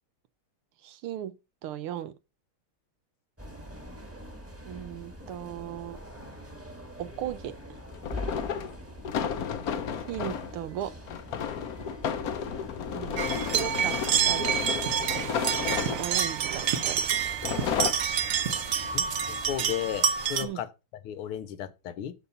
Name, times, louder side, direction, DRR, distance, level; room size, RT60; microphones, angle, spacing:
voice 1, 0.8-1.3 1.6-2.1 4.6-6.0 7.0-7.5 10.1-10.9 12.9-13.9 14.2-14.5 16.0-17.0 20.4-20.6, right 11 dB, 80° right, 1.7 m, -36 dB
sound 1, 3.4-19.7, equal, 10° right, 1.2 m, -44 dB
sound 2, 5.2-5.3 7.9-10.5 11.1-16.3 17.1-17.9, left 7 dB, 60° left, 1.0 m, -32 dB
sound 3, 13.2-20.4, right 8 dB, 60° right, 0.9 m, -28 dB
voice 2, 18.9-20.7 21.1-22.1, left 10 dB, 85° left, 1.8 m, -34 dB
11.5 x 4.2 x 5.5 m
omnidirectional pair, 2.4 m